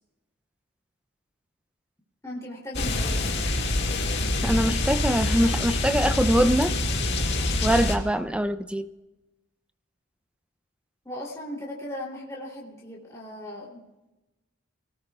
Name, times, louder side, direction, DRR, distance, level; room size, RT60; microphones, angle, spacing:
voice 1, 2.2-3.7 11.0-13.8, left 1 dB, 15° left, -4 dB, 3.1 m, -38 dB
sound 1, 2.7-8.0, left 2 dB, 55° left, 2.0 m, -26 dB
voice 2, 4.4-6.8 7.6-8.9, equal, 5° right, 10 dB, 0.5 m, -23 dB
27.0 x 18.5 x 2.4 m, 1.1 s
head